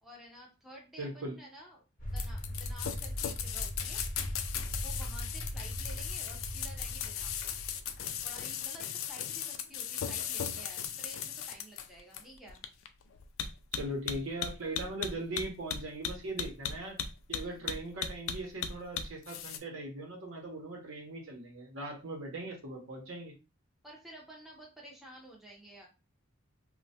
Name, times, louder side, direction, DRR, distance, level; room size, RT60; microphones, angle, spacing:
voice 1, 0.0-1.8 2.1-4.0 4.7-7.4 8.0-12.6 17.4-17.6 23.8-25.9, right 1 dB, ahead, -3 dB, 0.6 m, -52 dB
voice 2, 1.0-1.4 13.7-17.0 17.3-23.3, right 1 dB, 70° right, 0 dB, 0.8 m, -40 dB
sound 1, 2.0-8.5, equal, 35° left, 0.8 m, -40 dB
sound 2, 2.2-19.6, left 8 dB, 75° left, 0.4 m, -37 dB
3.1 x 2.2 x 2.7 m, 0.29 s
head